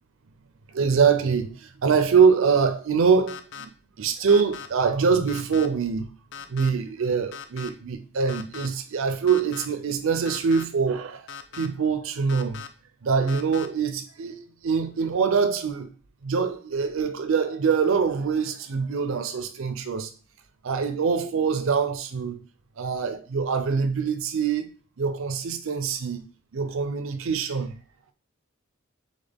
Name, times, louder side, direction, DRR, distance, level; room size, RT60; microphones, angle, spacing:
voice 1, 0.7-3.7 4.0-6.1 6.5-11.3 11.5-12.6 13.0-15.9 16.2-20.1 20.6-22.4 22.8-24.7 25.0-26.2 26.5-27.7, right 5 dB, 65° right, 0.5 m, -24 dB
sound 1, 3.3-3.6 4.3-4.7 5.3-5.7 6.3-6.7 7.3-7.7 8.3-8.7 9.3-9.6 10.2-10.6 11.3-11.7 12.3-12.7 13.3-13.7, left 7 dB, 60° left, 0.4 m, -39 dB
4.0 x 3.5 x 3.5 m
head